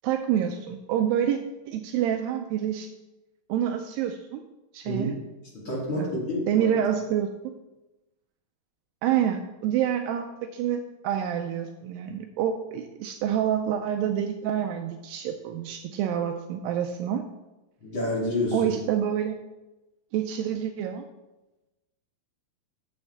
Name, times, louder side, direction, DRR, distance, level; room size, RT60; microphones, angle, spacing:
voice 1, 0.0-1.4 1.7-2.9 3.5-4.4 4.7-5.1 6.0-6.1 6.5-7.3 9.0-17.3 18.5-19.4 20.1-21.0, right 9 dB, 85° right, 5 dB, 2.2 m, -27 dB
voice 2, 5.5-6.7 17.8-18.7, left 1 dB, 35° left, -6 dB, 2.9 m, -29 dB
9.3 x 7.1 x 3.3 m, 1.0 s
omnidirectional pair, 4.1 m